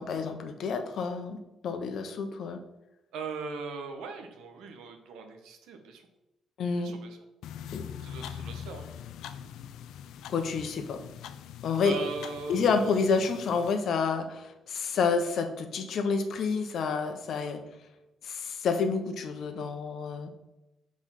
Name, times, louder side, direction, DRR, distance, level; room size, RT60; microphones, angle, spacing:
voice 1, 0.0-1.4 1.6-2.6 6.6-6.9 7.7-7.8 10.3-11.0 11.6-12.0 12.5-17.6 18.2-20.3, left 5 dB, 65° left, 7 dB, 1.0 m, -29 dB
voice 2, 3.1-6.0 6.7-7.2 8.0-8.8 11.8-13.0, right 4 dB, 90° right, 5 dB, 1.2 m, -39 dB
sound 1, 7.4-13.7, left 9 dB, 85° left, 0.5 m, -43 dB
6.3 x 4.8 x 5.8 m, 0.96 s
cardioid pair, 90°, 0 cm